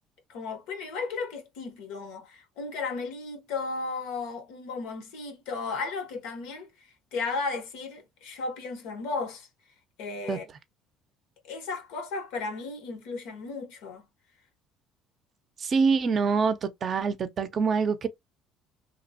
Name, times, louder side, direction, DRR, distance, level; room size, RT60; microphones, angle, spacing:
voice 1, 0.3-9.5 10.0-10.5 11.4-14.1, left 4 dB, 90° left, 0.8 m, -35 dB
voice 2, 15.6-18.1, right 5 dB, 40° right, 0.4 m, -25 dB
2.9 x 2.0 x 2.6 m
cardioid pair, 130°, 0 cm